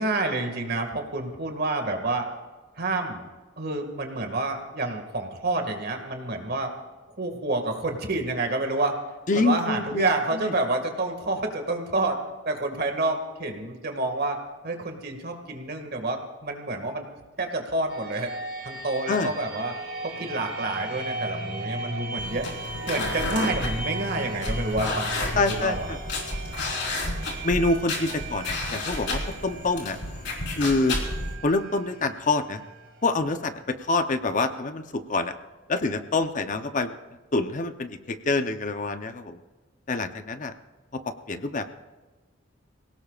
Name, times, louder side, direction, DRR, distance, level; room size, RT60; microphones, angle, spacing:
voice 1, 0.0-2.3 2.8-3.3 3.6-6.7 7.2-9.0 9.3-17.1 17.4-18.3 18.6-19.7 20.0-22.5 22.8-26.0, right 2 dB, 55° right, 4 dB, 2.0 m, -28 dB
voice 2, 9.3-10.1 10.4-10.5 19.1-19.3 25.4-26.0 27.4-30.0 30.5-31.0 31.4-32.6 33.0-35.4 35.7-36.9 37.3-39.4 39.9-40.5 40.9-41.7, left 3 dB, 40° left, 9 dB, 0.7 m, -26 dB
sound 1, 17.9-33.5, right 2 dB, 85° right, 3.6 m, -37 dB
sound 2, 22.2-31.3, left 2 dB, 65° left, 3.8 m, -31 dB
25.5 x 17.5 x 2.4 m, 1.3 s
head